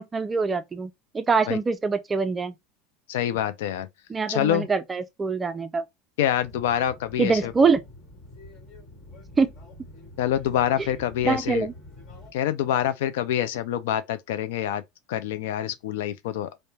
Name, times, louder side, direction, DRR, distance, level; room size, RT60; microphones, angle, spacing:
voice 1, 0.0-2.5 4.1-5.8 7.2-7.8 9.4-9.5 10.8-10.9 11.2-11.7, right 4 dB, 20° right, 0.3 m, -24 dB
voice 2, 3.1-3.9 4.3-4.7 6.2-7.5 10.2-11.7 12.3-14.8 15.1-16.5, left 11 dB, 85° left, 0.3 m, -26 dB
sound 1, 6.4-12.3, left 1 dB, 45° left, 1.4 m, -46 dB
3.1 x 2.1 x 2.2 m
supercardioid pair, 125°, 0 cm